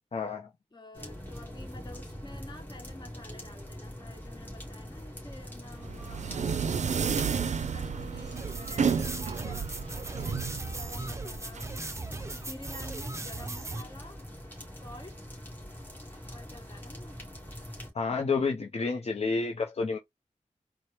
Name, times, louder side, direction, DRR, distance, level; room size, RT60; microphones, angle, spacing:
voice 1, 0.1-0.5 17.9-20.0, left 4 dB, 55° left, 0.6 m, -29 dB
voice 2, 0.7-6.7 7.2-11.6 12.3-15.2 16.3-17.2, left 1 dB, 35° left, 1.2 m, -50 dB
sound 1, 0.9-17.9, equal, 15° left, 2.0 m, -44 dB
sound 2, 5.8-11.6, right 6 dB, 70° right, 0.4 m, -31 dB
sound 3, 8.4-13.8, right 2 dB, 25° right, 0.6 m, -38 dB
4.3 x 2.0 x 3.1 m
wide cardioid pair, 70°, 12 cm